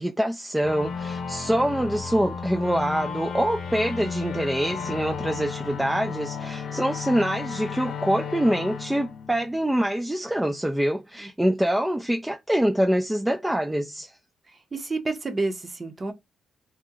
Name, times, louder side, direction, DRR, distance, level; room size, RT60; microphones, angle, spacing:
voice 1, 0.0-14.1, right 1 dB, 5° right, 0.3 m, -25 dB
sound 1, 0.6-10.0, left 6 dB, 55° left, 0.7 m, -33 dB
voice 2, 14.5-16.1, right 3 dB, 25° right, 0.7 m, -30 dB
2.8 x 2.1 x 3.6 m
cardioid pair, 105°, 0 cm